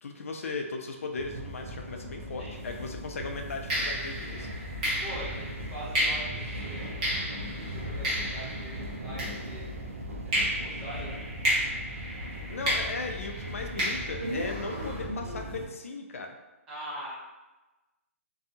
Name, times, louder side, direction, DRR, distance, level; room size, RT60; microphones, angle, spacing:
voice 1, 0.0-4.5 12.5-16.3, left 3 dB, 65° left, 3 dB, 0.4 m, -37 dB
sound 1, 1.1-15.7, equal, 70° right, 0.5 m, -38 dB
sound 2, 2.5-2.8 3.7-9.9 10.3-15.0, equal, 25° right, 0.8 m, -33 dB
voice 2, 5.0-9.7 10.2-11.2 16.7-17.1, right 1 dB, 10° right, -8 dB, 0.5 m, -43 dB
sound 3, 5.3-5.5 5.8-5.9 6.5-6.6 7.0-7.1 7.6-7.7 8.2-8.3 8.8-9.0 9.4-9.5 10.0-10.1 10.6-10.7 11.1-11.2 11.6-11.7 12.2-12.3 12.8-13.0 13.4-13.5 13.9-14.0 14.5-14.6, equal, 15° left, 1.0 m, -52 dB
2.7 x 2.3 x 2.6 m, 1.1 s
hypercardioid pair, 175°, 8 cm